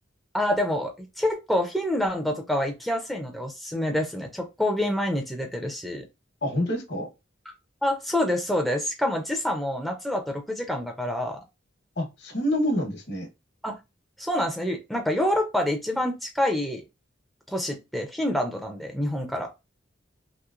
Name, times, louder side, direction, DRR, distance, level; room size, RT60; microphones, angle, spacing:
voice 1, 0.3-6.1 7.8-11.4 13.6-13.8 14.2-16.8 17.5-19.5, left 1 dB, ahead, 0.4 m, -27 dB
voice 2, 6.4-7.1 12.0-13.3, equal, 60° left, 1.0 m, -27 dB
3.0 x 2.9 x 2.4 m
head